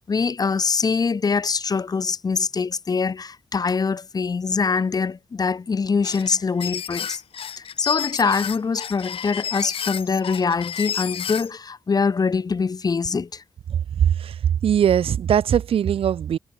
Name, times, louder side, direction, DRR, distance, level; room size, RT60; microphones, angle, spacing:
voice 1, 0.1-7.2 7.6-13.4, left 5 dB, 45° left, 1.1 m, -23 dB
sound 1, 6.0-11.5, left 8 dB, 80° left, 6.2 m, -31 dB
voice 2, 13.7-16.4, right 9 dB, 85° right, 1.2 m, -20 dB
cardioid pair, 80°, 9 cm